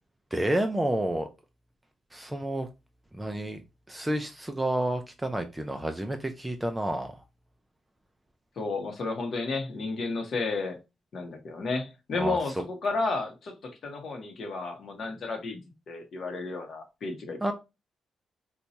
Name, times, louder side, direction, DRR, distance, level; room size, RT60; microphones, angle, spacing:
voice 1, 0.3-1.3 2.1-2.7 3.1-3.6 3.9-7.2 12.2-12.4 17.4-17.5, right 1 dB, 10° right, 0.3 m, -29 dB
voice 2, 8.6-10.8 11.1-17.5, left 3 dB, 55° left, 0.8 m, -32 dB
2.7 x 2.2 x 4.0 m
cardioid pair, 110°, 0 cm